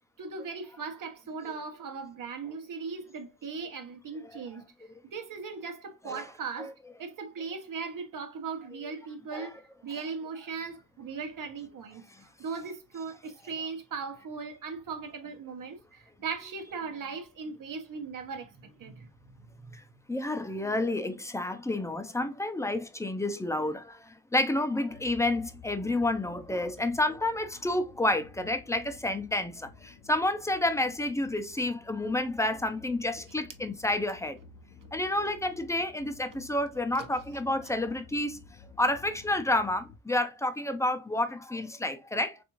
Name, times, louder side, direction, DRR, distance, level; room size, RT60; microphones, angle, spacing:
voice 1, 0.2-4.6 5.1-6.7 7.0-19.5, right 5 dB, 70° right, 0.9 m, -38 dB
voice 2, 20.1-34.4 34.9-38.4 38.8-42.4, left 1 dB, 10° left, 0.4 m, -30 dB
sound 1, 24.9-40.0, left 5 dB, 80° left, 0.6 m, -53 dB
3.5 x 2.6 x 2.8 m
wide cardioid pair, 105°, 33 cm